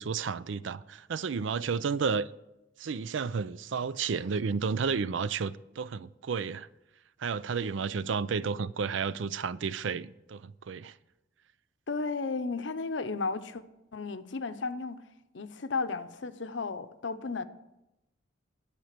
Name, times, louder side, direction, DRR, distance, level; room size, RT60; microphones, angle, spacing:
voice 1, 0.0-2.3 2.8-6.7 7.2-10.9, right 5 dB, 75° right, 0.4 m, -32 dB
voice 2, 11.9-13.6 13.9-15.0 15.3-17.4, left 4 dB, 70° left, 0.7 m, -34 dB
11.0 x 8.7 x 6.6 m
head